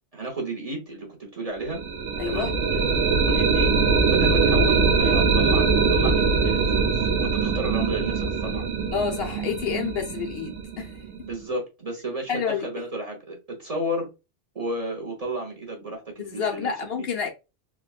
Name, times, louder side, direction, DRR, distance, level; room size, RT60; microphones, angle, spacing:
voice 1, 0.1-1.8 2.2-2.6 3.3-3.7 4.1-8.7 11.2-14.1 14.5-16.7, right 1 dB, 35° right, 0.8 m, -32 dB
sound 1, 1.7-11.5, right 4 dB, 80° right, 0.9 m, -22 dB
voice 2, 2.2-2.5 8.9-10.9 12.3-12.7 16.2-17.3, left 6 dB, 65° left, 0.7 m, -28 dB
3.6 x 2.2 x 2.3 m
omnidirectional pair, 1.2 m